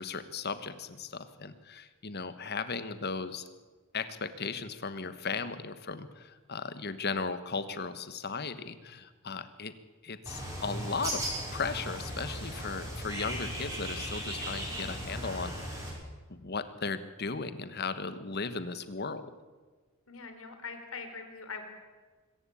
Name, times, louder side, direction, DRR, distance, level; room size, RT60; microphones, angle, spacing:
voice 1, 0.0-3.4 3.9-9.7 10.0-15.8 16.3-19.3, left 4 dB, 50° left, 12 dB, 1.3 m, -36 dB
Bird, 10.3-15.9, equal, 15° right, 6.3 m, -37 dB
voice 2, 20.1-21.7, left 4 dB, 70° left, 6 dB, 3.7 m, -42 dB
25.0 x 15.0 x 8.5 m, 1.4 s
head